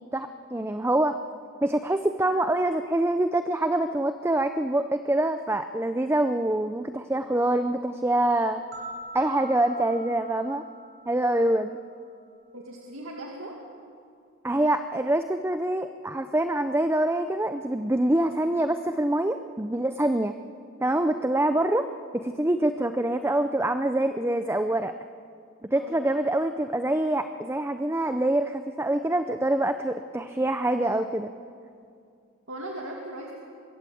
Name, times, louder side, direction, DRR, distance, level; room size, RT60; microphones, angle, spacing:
voice 1, 0.1-1.2 1.6-8.6 9.1-10.6 11.1-11.8 14.4-20.3 20.8-21.9 22.1-24.9 25.7-31.3, right 1 dB, 10° right, 8 dB, 0.6 m, -25 dB
sound 1, 8.7-11.8, right 1 dB, 50° right, 7.0 m, -43 dB
voice 2, 12.5-13.6 25.7-26.0 32.5-33.3, right 1 dB, 65° right, 0 dB, 2.4 m, -38 dB
25.0 x 22.5 x 7.8 m, 2.3 s
head